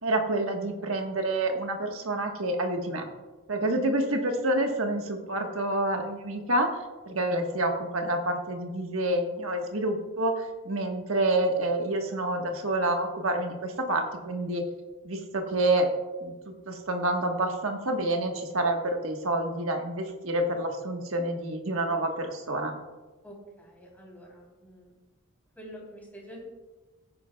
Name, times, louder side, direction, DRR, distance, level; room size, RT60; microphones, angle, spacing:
voice 1, 0.0-3.1 3.5-6.8 7.1-14.6 15.0-15.9 16.2-22.7, right 1 dB, 80° right, 3 dB, 1.3 m, -28 dB
voice 2, 23.2-24.9 25.6-26.5, equal, 10° left, -3 dB, 3.2 m, -46 dB
16.5 x 10.0 x 2.3 m, 1.2 s
head